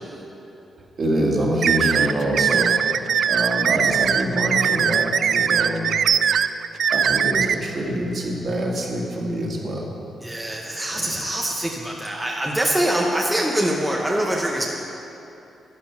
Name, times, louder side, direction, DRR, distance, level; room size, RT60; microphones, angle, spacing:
voice 1, 1.0-5.9 6.9-10.0 10.9-11.2, right 1 dB, 45° right, -2 dB, 2.1 m, -25 dB
sound 1, 1.6-7.5, right 8 dB, 65° right, 0.3 m, -20 dB
voice 2, 10.2-14.7, right 1 dB, 5° right, -2 dB, 1.0 m, -24 dB
12.0 x 10.0 x 5.8 m, 2.9 s
cardioid pair, 120°, 0 cm